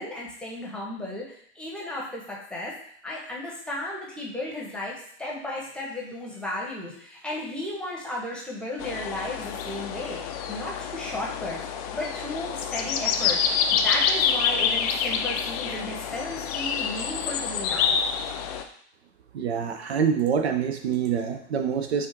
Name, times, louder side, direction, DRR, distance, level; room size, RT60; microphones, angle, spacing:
voice 1, 0.0-11.6 11.9-18.0, left 1 dB, 5° left, -4 dB, 1.0 m, -34 dB
sound 1, 8.8-18.6, left 7 dB, 35° left, 0.4 m, -27 dB
voice 2, 19.3-22.1, right 7 dB, 65° right, 7 dB, 0.5 m, -26 dB
7.1 x 2.5 x 2.7 m, 0.63 s
figure-of-eight pair, 95°, 35 cm